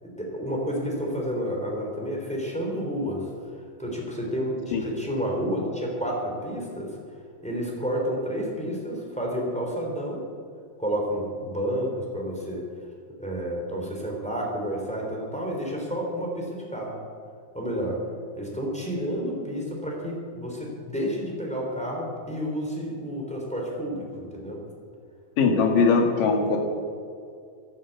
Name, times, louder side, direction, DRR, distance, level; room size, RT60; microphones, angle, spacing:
voice 1, 0.0-3.3 3.8-7.0 7.4-10.2 10.8-12.6 13.2-17.0 17.5-18.0 18.4-24.6, equal, ahead, -2 dB, 2.6 m, -30 dB
voice 2, 25.4-26.6, left 4 dB, 65° left, 3 dB, 3.2 m, -20 dB
13.0 x 11.5 x 8.3 m, 2.3 s
omnidirectional pair, 4.4 m